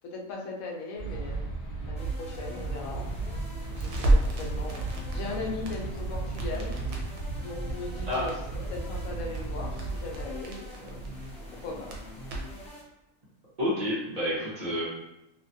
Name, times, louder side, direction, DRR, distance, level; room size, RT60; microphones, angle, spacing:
voice 1, 0.0-1.4 1.8-3.1 3.7-6.7 7.4-8.3 8.7-11.0 11.6-11.9, left 3 dB, 80° left, -1 dB, 1.0 m, -38 dB
sound 1, 1.0-10.3, right 3 dB, 55° left, 0.8 m, -35 dB
sound 2, 2.0-12.8, left 1 dB, 5° left, 0.9 m, -46 dB
Crackle, 3.7-12.7, right 2 dB, 80° right, 1.0 m, -33 dB
voice 2, 13.6-14.8, left 1 dB, 35° right, -9 dB, 0.7 m, -29 dB
2.7 x 2.3 x 2.6 m, 0.90 s
omnidirectional pair, 1.4 m